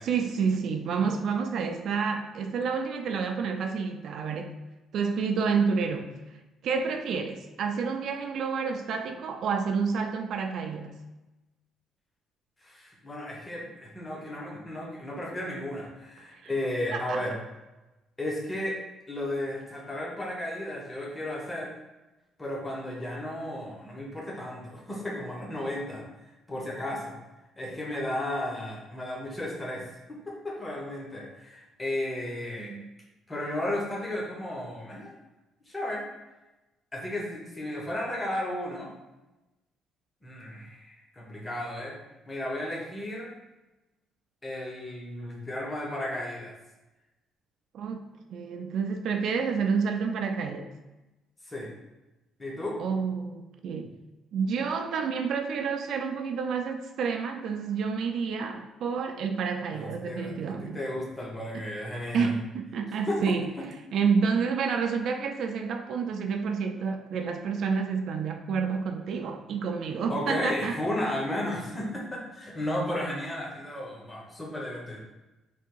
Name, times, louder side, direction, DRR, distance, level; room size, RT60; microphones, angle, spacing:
voice 1, 0.0-4.5 4.9-6.4 6.6-11.0 16.3-16.4 16.9-17.2 32.6-32.9 47.7-48.0 48.3-50.7 52.8-53.9 54.3-60.8 62.1-63.5 63.9-70.8, right 5 dB, 55° right, 5 dB, 0.3 m, -29 dB
voice 2, 12.6-17.4 18.2-18.8 19.1-21.7 22.4-26.0 26.5-27.1 27.6-32.7 33.3-35.1 35.7-36.1 36.9-38.9 40.2-42.0 42.3-43.3 44.4-46.5 51.5-51.7 52.4-52.8 59.7-62.4 63.1-63.2 70.1-75.0, left 1 dB, 15° left, -2 dB, 0.8 m, -34 dB
3.4 x 2.8 x 4.5 m, 1.0 s
cardioid pair, 160°, 0 cm